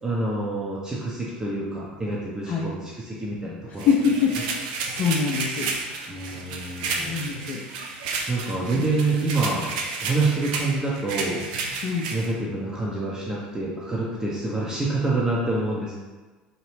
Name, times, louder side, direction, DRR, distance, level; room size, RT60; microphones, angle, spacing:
voice 1, 0.0-3.9 6.1-7.3 8.3-9.7 10.0-11.4 12.1-15.9, right 2 dB, 15° right, -5 dB, 0.8 m, -27 dB
sound 1, 3.8-12.3, right 4 dB, 65° right, 0.5 m, -32 dB
voice 2, 3.9-4.4 4.9-5.7 6.8-7.6 8.7-8.8 11.8-12.1, left 6 dB, 45° left, -4 dB, 0.6 m, -24 dB
4.2 x 2.8 x 3.2 m, 1.3 s
figure-of-eight pair, 70°, 5 cm